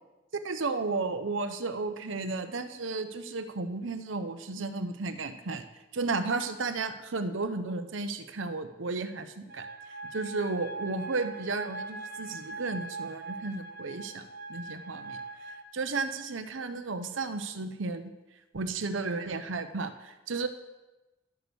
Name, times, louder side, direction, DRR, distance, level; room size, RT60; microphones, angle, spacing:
voice 1, 0.4-5.6 5.9-9.7 10.1-15.2 15.7-18.0 18.5-20.5, right 3 dB, 85° right, 9 dB, 0.8 m, -33 dB
sound 1, 9.5-15.6, right 3 dB, 50° right, 0.9 m, -41 dB
12.0 x 6.2 x 6.9 m, 1.1 s
head